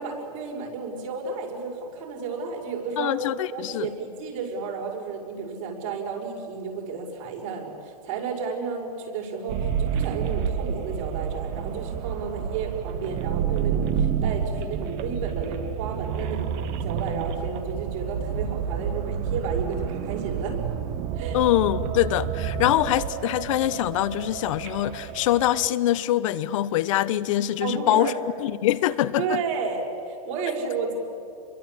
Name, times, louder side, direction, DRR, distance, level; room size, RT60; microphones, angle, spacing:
voice 1, 0.0-3.2 3.5-20.8 21.2-21.4 22.5-22.7 27.6-28.1 29.2-31.0, right 5 dB, 50° right, 6.4 m, -32 dB
voice 2, 3.0-3.9 21.3-28.1 28.4-29.4, left 14 dB, 55° left, 1.0 m, -24 dB
sound 1, 9.5-25.7, right 8 dB, 35° right, 1.1 m, -29 dB
28.5 x 22.5 x 8.7 m
supercardioid pair, 155°, 20 cm